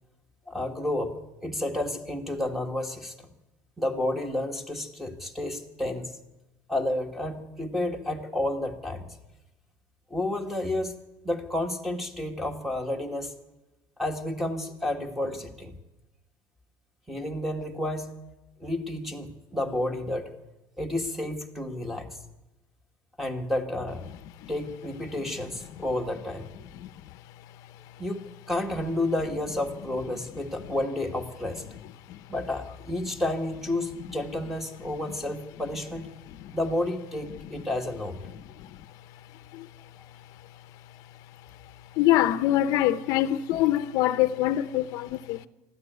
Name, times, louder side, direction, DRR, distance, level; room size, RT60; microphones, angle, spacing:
voice 1, 0.5-1.1 1.4-3.1 3.8-6.1 6.7-9.2 10.1-11.0 11.2-13.3 14.0-15.7 17.1-18.1 18.6-20.3 20.8-22.2 23.2-24.0 24.5-26.5 28.0-31.6 32.3-36.1 36.5-38.2 42.9-43.0, left 1 dB, 5° right, 1.7 m, -31 dB
voice 2, 42.0-45.5, left 13 dB, 60° left, 0.8 m, -24 dB
23.5 x 13.0 x 9.4 m
cardioid pair, 170°, 7 cm